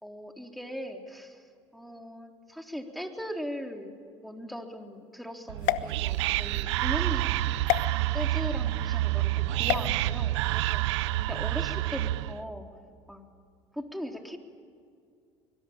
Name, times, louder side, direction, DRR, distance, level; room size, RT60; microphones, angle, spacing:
voice 1, 0.0-1.4 1.7-7.7 8.1-10.8 11.3-12.7 13.1-13.2 13.7-14.4, equal, ahead, 3 dB, 3.8 m, -39 dB
Whispering, 5.5-12.4, right 15 dB, 80° right, 0.7 m, -28 dB
sound 1, 5.6-6.6 7.7-7.8 9.6-9.9, left 16 dB, 65° left, 1.1 m, -29 dB
24.5 x 23.0 x 8.9 m, 2.3 s
hypercardioid pair, 75°, 14 cm